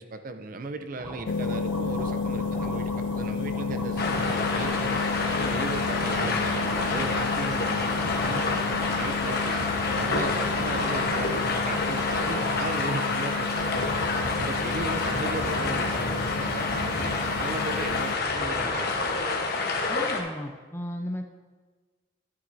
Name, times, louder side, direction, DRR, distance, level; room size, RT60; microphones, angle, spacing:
voice 1, 0.0-5.1 5.4-7.9 8.2-9.7 10.0-19.1, right 3 dB, 45° right, 9 dB, 0.5 m, -36 dB
sound 1, 1.0-12.5, equal, 15° right, 0.9 m, -38 dB
sound 2, 1.3-18.2, left 5 dB, 65° left, 0.4 m, -33 dB
sound 3, 4.0-20.2, left 3 dB, 50° left, 1.1 m, -28 dB
voice 2, 19.9-21.2, equal, 10° left, 5 dB, 0.5 m, -35 dB
11.0 x 9.6 x 2.7 m, 1.4 s
head